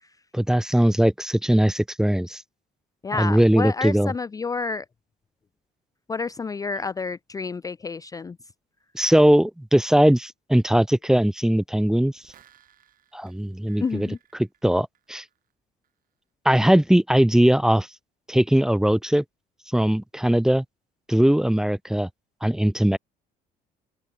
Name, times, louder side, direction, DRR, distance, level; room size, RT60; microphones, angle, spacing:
voice 1, 0.3-2.4 3.1-4.1 8.9-12.1 13.1-15.2 16.4-17.9 18.3-19.2 19.7-20.6 21.1-22.1 22.4-23.0, right 1 dB, 5° right, 0.8 m, -20 dB
voice 2, 3.0-4.8 6.1-8.4 13.8-14.2, left 4 dB, 20° left, 0.5 m, -29 dB
sound 1, 12.0-15.5 15.8-15.9, right 10 dB, 55° right, 6.7 m, -59 dB
open air
cardioid pair, 110°, 17 cm